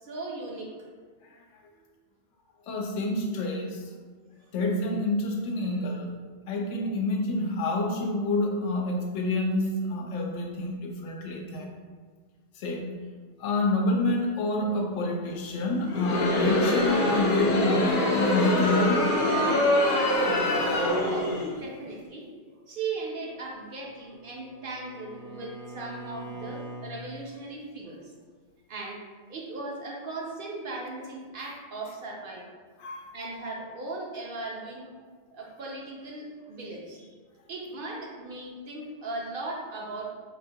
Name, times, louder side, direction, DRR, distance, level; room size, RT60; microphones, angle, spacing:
voice 1, 0.0-1.0 20.4-28.1 28.7-29.0 29.3-32.5 33.1-34.9 35.3-37.1 37.5-40.1, right 3 dB, 60° right, -1 dB, 0.7 m, -38 dB
voice 2, 2.7-3.8 4.5-6.1 6.5-11.7 12.6-12.9 13.4-19.1 32.8-33.1, left 2 dB, 80° left, 1 dB, 0.9 m, -28 dB
Crowd, 15.8-21.6, left 1 dB, 55° left, 0.6 m, -24 dB
Bowed string instrument, 23.6-27.0, right 2 dB, 80° right, 1.0 m, -43 dB
4.8 x 2.1 x 2.7 m, 1.5 s
omnidirectional pair, 1.2 m